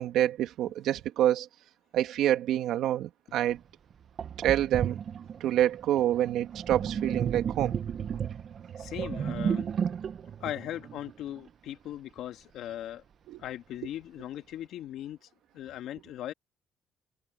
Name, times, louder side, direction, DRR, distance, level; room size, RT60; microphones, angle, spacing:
voice 1, 0.0-1.5 1.9-3.6 4.4-5.0 5.4-7.7 13.3-13.4, right 12 dB, 80° right, 2.4 m, -27 dB
Sink (filling or washing), 3.5-3.6 4.2-11.5, right 7 dB, 55° right, 1.7 m, -34 dB
voice 2, 8.8-9.7 10.4-13.0 13.4-15.2 15.5-16.3, left 12 dB, 75° left, 2.3 m, -39 dB
supercardioid pair, 75°, 0 cm